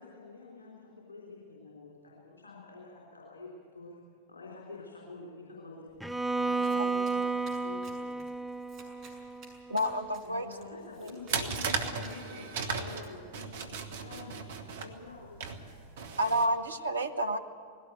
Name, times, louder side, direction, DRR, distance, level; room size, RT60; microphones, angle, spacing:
voice 1, 0.0-4.0 4.3-5.9 6.3-8.1 10.2-15.8, left 3 dB, 70° left, -3 dB, 3.7 m, -47 dB
Bowed string instrument, 6.0-10.0, right 4 dB, ahead, 0.6 m, -33 dB
Domestic sounds home sounds, 6.6-13.1, right 3 dB, 35° right, 6.8 m, -56 dB
voice 2, 9.7-10.5 10.7-11.1 16.2-17.4, equal, 75° right, 7 dB, 1.1 m, -30 dB
sound 1, 11.3-16.5, right 5 dB, 55° right, 1.5 m, -36 dB
19.5 x 17.0 x 9.3 m, 2.2 s
figure-of-eight pair, 90°, 0 cm